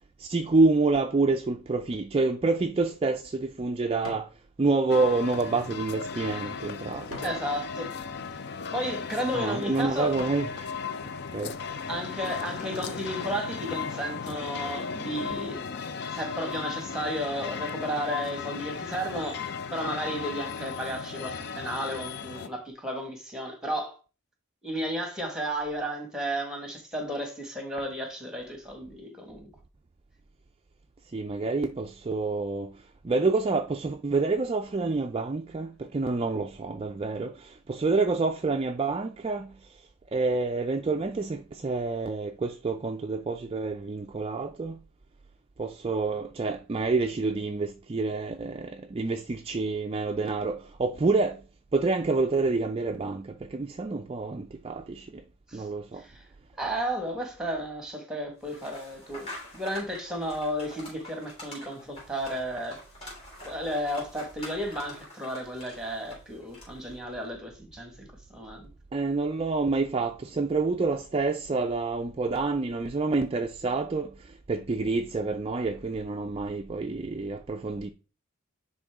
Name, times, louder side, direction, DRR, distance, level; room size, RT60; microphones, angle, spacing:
voice 1, 0.2-7.4 9.3-10.7 11.3-11.6 31.0-44.8 45.6-51.4 51.7-55.2 55.5-56.1 68.9-77.9, right 3 dB, 25° right, 0.3 m, -28 dB
sound 1, 2.5-4.4 4.8-7.4 8.0-8.3 9.0-9.1 9.6-10.5 11.0-11.1, left 3 dB, 70° left, 2.0 m, -46 dB
sound 2, 4.9-22.5, left 6 dB, 50° left, 0.5 m, -36 dB
voice 2, 7.2-7.9 8.7-10.1 11.9-15.6 16.1-19.4 19.7-24.0 24.6-29.5 55.5-55.6 56.0-56.3 56.6-62.8 63.4-68.1 68.3-68.7, equal, 5° right, 1.4 m, -33 dB
sound 3, 58.4-66.9, left 1 dB, 25° left, 3.2 m, -46 dB
10.0 x 3.7 x 3.5 m
head